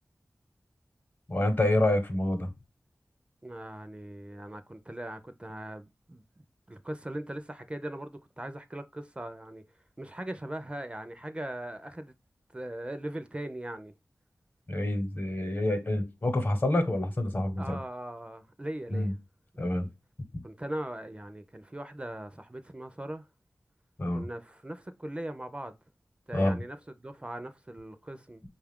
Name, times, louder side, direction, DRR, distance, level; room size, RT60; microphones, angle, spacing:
voice 1, 1.3-2.5 14.7-17.6 18.9-19.1 19.6-19.9 24.0-24.3 26.3-26.6, left 1 dB, 45° left, 1.0 m, -27 dB
voice 2, 3.4-6.2 6.7-9.6 10.0-12.1 12.5-13.9 17.6-19.1 20.4-23.2 24.1-25.8 26.3-28.4, right 1 dB, 20° right, 0.4 m, -40 dB
5.1 x 2.4 x 3.4 m
wide cardioid pair, 75°, 5 cm